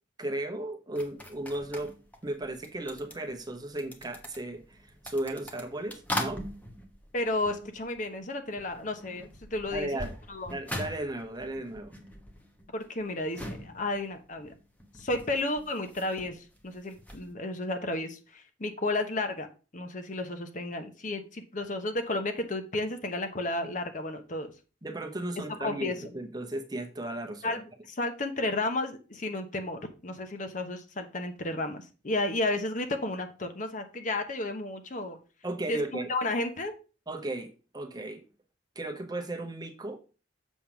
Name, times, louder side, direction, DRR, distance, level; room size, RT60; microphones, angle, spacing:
voice 1, 0.2-1.9 2.2-6.4 9.7-10.1 10.5-11.9 24.8-27.6 35.4-36.1 37.1-38.2 38.8-40.0, right 1 dB, 20° right, 5 dB, 0.9 m, -35 dB
sound 1, 1.0-8.3 8.5-17.3, left 1 dB, 10° left, 1.1 m, -42 dB
voice 2, 7.1-10.0 10.3-10.6 12.7-14.5 15.0-19.5 19.7-24.5 25.6-26.1 27.4-35.2 35.7-36.7, left 2 dB, 40° left, 6 dB, 0.9 m, -32 dB
7.3 x 3.5 x 5.9 m, 0.34 s
head